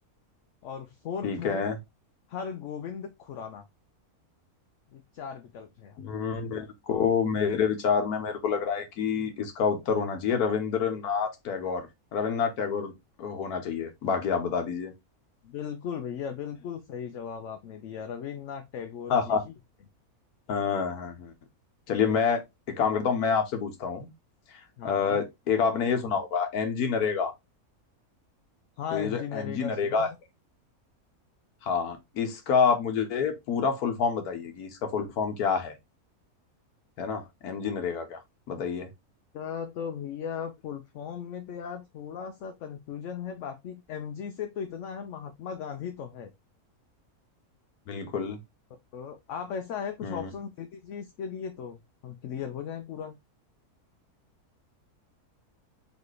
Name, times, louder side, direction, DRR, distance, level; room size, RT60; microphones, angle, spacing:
voice 1, 0.6-1.6 2.3-3.7 4.9-6.3 15.4-19.5 24.8-25.2 28.8-30.1 39.3-46.3 48.9-53.1, left 7 dB, 65° left, 0.8 m, -37 dB
voice 2, 1.2-1.8 6.0-11.9 12.1-12.9 13.2-14.9 19.1-19.4 20.5-21.3 21.9-22.4 22.7-24.1 24.8-27.3 28.9-30.1 31.6-35.7 37.0-38.2 38.5-38.9 47.9-48.4 50.0-50.3, left 6 dB, 85° left, 1.4 m, -28 dB
4.1 x 3.3 x 3.1 m
omnidirectional pair, 1.6 m